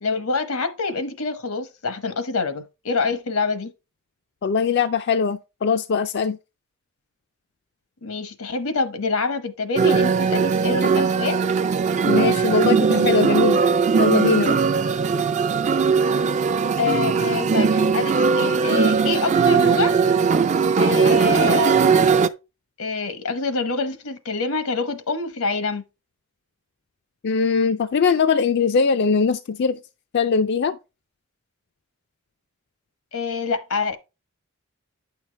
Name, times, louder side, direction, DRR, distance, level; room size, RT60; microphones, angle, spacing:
voice 1, 0.0-3.7 8.0-11.4 16.8-20.0 20.8-22.1 22.8-25.9 33.1-34.0, left 4 dB, 85° left, 1.1 m, -26 dB
voice 2, 4.4-6.4 12.1-13.6 14.0-14.6 27.2-29.8 30.1-30.8, left 5 dB, 50° left, 0.4 m, -21 dB
sound 1, 9.8-22.3, right 5 dB, 35° right, 0.4 m, -19 dB
9.3 x 5.8 x 3.3 m
head